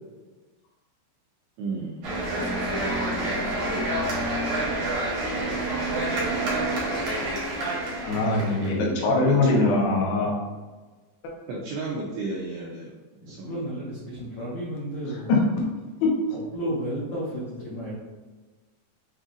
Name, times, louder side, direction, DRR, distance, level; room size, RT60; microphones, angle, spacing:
voice 1, 1.6-2.1 9.3-9.7 11.5-12.9 13.3-13.8, right 3 dB, 85° right, -4 dB, 2.4 m, -33 dB
sound 1, 2.0-8.7, right 1 dB, 70° right, 1.6 m, -28 dB
voice 2, 8.0-10.4 15.3-15.4 16.0-16.1, left 3 dB, 70° left, -3 dB, 2.4 m, -22 dB
voice 3, 13.2-15.5 16.3-17.9, equal, 90° left, -8 dB, 1.6 m, -33 dB
7.6 x 2.7 x 2.5 m, 1.3 s
omnidirectional pair, 5.3 m